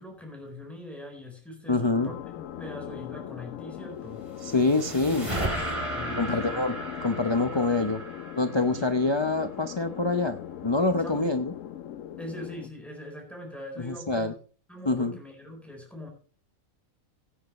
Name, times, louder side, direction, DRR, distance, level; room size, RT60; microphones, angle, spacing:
voice 1, 0.0-4.2 5.9-6.7 8.7-8.9 11.0-11.4 12.2-14.4 14.7-16.1, left 1 dB, ahead, 0 dB, 4.1 m, -42 dB
voice 2, 1.7-2.1 4.4-5.3 6.2-8.0 8.4-10.4 10.6-11.5 13.8-14.3 14.9-15.1, left 3 dB, 30° left, 8 dB, 0.5 m, -26 dB
sound 1, 1.9-12.7, left 10 dB, 70° left, 1.0 m, -40 dB
sound 2, 4.0-9.4, right 1 dB, 20° right, 2.7 m, -35 dB
17.0 x 9.4 x 3.1 m, 0.40 s
omnidirectional pair, 1.4 m